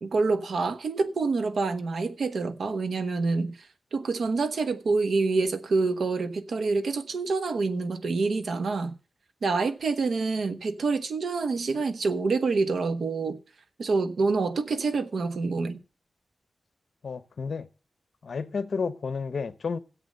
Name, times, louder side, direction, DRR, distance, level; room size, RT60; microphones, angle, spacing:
voice 1, 0.0-3.6 3.9-9.0 9.4-13.4 13.8-15.8, right 4 dB, 70° right, 1.2 m, -27 dB
voice 2, 17.0-17.7 18.2-19.8, left 5 dB, 65° left, 1.1 m, -31 dB
12.5 x 8.1 x 6.6 m
wide cardioid pair, 90°, 0 cm